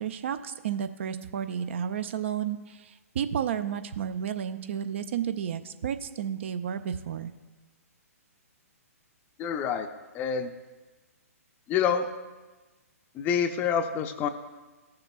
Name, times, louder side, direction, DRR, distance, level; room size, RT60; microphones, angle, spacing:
voice 1, 0.0-7.3, right 8 dB, 50° right, 11 dB, 0.5 m, -32 dB
voice 2, 9.4-9.9 10.1-10.5 11.7-12.1 13.2-14.3, left 7 dB, 20° left, 9 dB, 0.5 m, -27 dB
15.0 x 6.7 x 2.3 m, 1.2 s
figure-of-eight pair, 125°, 8 cm